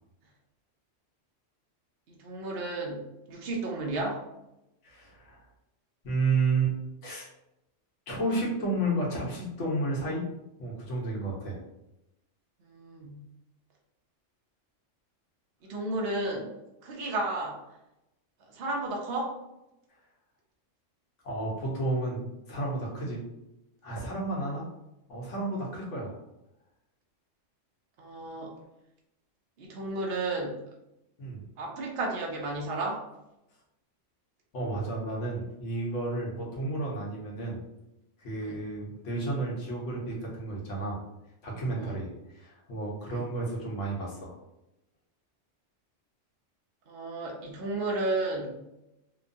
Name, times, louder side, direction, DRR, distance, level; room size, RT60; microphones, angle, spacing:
voice 1, 2.1-4.2 12.6-13.2 15.7-16.5 16.8-17.6 18.5-19.3 28.0-28.5 29.6-30.6 31.6-33.0 38.3-38.6 41.7-41.9 43.0-43.3 46.9-48.6, right 2 dB, 60° right, -1 dB, 0.8 m, -33 dB
voice 2, 4.8-5.4 6.0-6.7 7.0-7.3 8.1-10.2 10.6-11.6 21.2-23.2 23.8-24.6 25.1-26.2 31.2-31.4 34.5-37.6 38.2-41.0 41.4-44.3, right 2 dB, 75° left, -3 dB, 1.2 m, -31 dB
3.0 x 2.2 x 2.5 m, 0.90 s
omnidirectional pair, 1.3 m